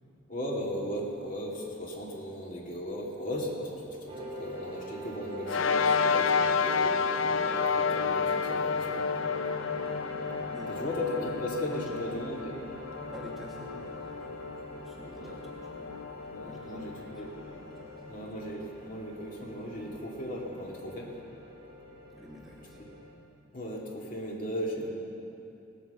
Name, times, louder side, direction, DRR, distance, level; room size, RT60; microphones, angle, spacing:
voice 1, 0.3-9.1 10.7-12.6 15.1-15.4 16.3-17.3 18.1-21.1 23.5-24.9, equal, 45° left, -2 dB, 2.4 m, -37 dB
sound 1, 4.1-23.1, equal, 30° right, 2.6 m, -43 dB
sound 2, 5.5-18.2, left 5 dB, 80° left, 0.5 m, -31 dB
voice 2, 9.7-10.1 10.5-10.9 11.6-12.0 13.1-18.1 22.1-22.9, equal, ahead, -3 dB, 1.1 m, -49 dB
18.0 x 9.2 x 6.9 m, 2.8 s
head